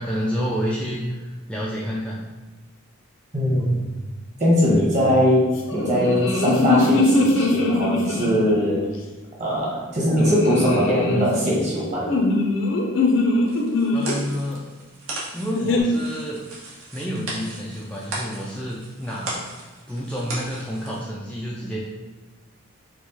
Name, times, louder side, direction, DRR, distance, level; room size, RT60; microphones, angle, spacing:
voice 1, 0.0-2.2 13.9-14.6 15.3-16.5 16.9-19.4 19.9-21.8, equal, 5° left, -5 dB, 0.3 m, -29 dB
voice 2, 3.3-3.8 4.4-8.8 9.4-12.1, equal, 35° right, -5 dB, 1.3 m, -21 dB
sound 1, 5.7-8.7 10.2-11.3 12.0-14.1 15.5-15.8, left 2 dB, 65° left, 0.6 m, -21 dB
sound 2, 13.4-21.0, right 2 dB, 80° right, 1.1 m, -36 dB
4.6 x 2.3 x 4.1 m, 1.2 s
head